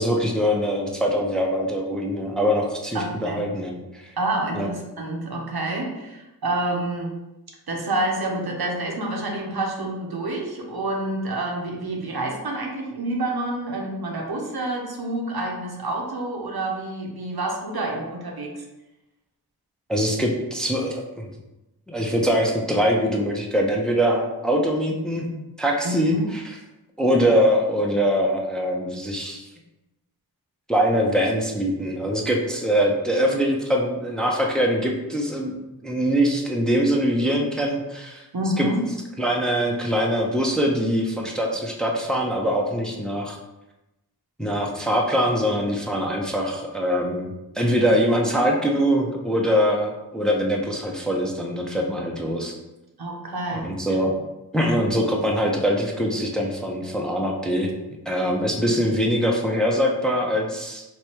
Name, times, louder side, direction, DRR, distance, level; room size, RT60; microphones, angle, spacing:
voice 1, 0.0-4.1 4.5-4.7 19.9-21.3 21.9-25.3 25.6-26.6 27.0-29.4 30.7-38.3 38.6-38.7 39.2-43.4 44.4-52.5 53.5-54.2 54.5-57.7 58.1-60.8, equal, ahead, 0 dB, 0.5 m, -23 dB
voice 2, 2.9-3.4 4.2-7.1 7.7-18.6 25.8-26.2 38.3-38.9 53.0-53.7 54.7-54.8, right 1 dB, 75° right, 0 dB, 0.7 m, -28 dB
3.1 x 2.3 x 4.3 m, 0.98 s
wide cardioid pair, 50°, 38 cm